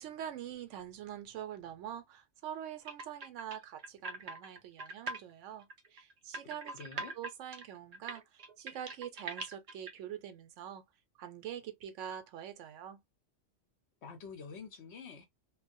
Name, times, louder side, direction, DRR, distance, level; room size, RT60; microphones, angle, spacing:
voice 1, 0.0-10.8 11.2-13.0, right 10 dB, 85° right, 0.9 m, -45 dB
sound 1, 2.8-5.2 5.6-9.9, right 3 dB, 55° right, 0.4 m, -42 dB
voice 2, 6.6-7.1 14.0-15.2, left 5 dB, 65° left, 1.0 m, -47 dB
2.3 x 2.1 x 2.5 m
omnidirectional pair, 1.2 m